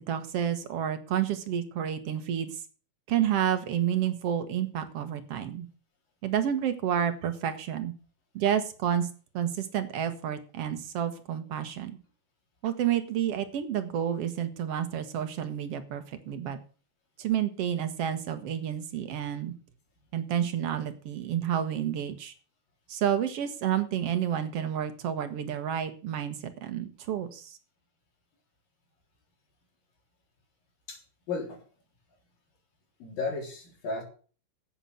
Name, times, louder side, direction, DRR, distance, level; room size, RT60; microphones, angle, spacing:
voice 1, 0.1-2.6 3.1-5.7 6.2-7.9 8.3-9.1 9.3-11.9 12.6-16.6 17.2-19.5 20.1-22.3 22.9-27.6, right 9 dB, 55° right, 10 dB, 1.8 m, -30 dB
voice 2, 31.3-31.6 33.0-34.0, left 3 dB, 85° left, 1 dB, 5.6 m, -34 dB
9.9 x 8.5 x 7.7 m, 0.39 s
omnidirectional pair, 3.9 m